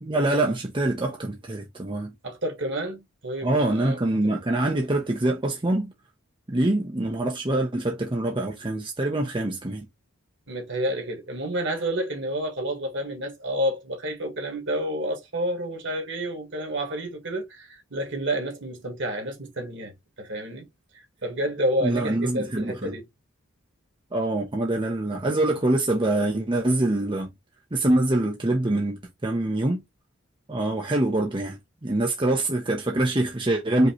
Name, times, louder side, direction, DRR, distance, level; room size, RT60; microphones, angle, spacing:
voice 1, 0.0-2.1 3.4-5.9 6.5-9.9 21.8-22.9 24.1-27.3 27.7-29.8 30.5-33.9, right 1 dB, 25° right, 0.7 m, -25 dB
voice 2, 2.2-4.3 10.5-19.9 20.2-20.7 21.2-23.1, right 1 dB, 60° right, 1.8 m, -30 dB
5.2 x 3.0 x 2.9 m
head